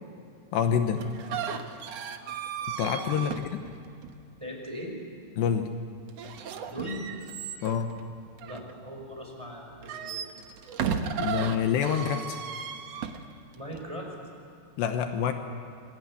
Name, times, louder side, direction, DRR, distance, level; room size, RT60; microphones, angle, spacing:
voice 1, 0.5-1.1 2.8-3.6 5.4-5.7 7.6-7.9 11.2-12.4 14.8-15.3, left 8 dB, 80° left, 6 dB, 3.2 m, -27 dB
sound 1, 1.0-4.3 6.1-9.1 9.7-13.9, right 7 dB, 75° right, 1.4 m, -35 dB
voice 2, 4.4-4.9 6.6-7.1 8.4-10.2 13.5-14.1, equal, 5° right, 1 dB, 5.0 m, -39 dB
27.0 x 22.0 x 9.8 m, 2.4 s
omnidirectional pair, 5.0 m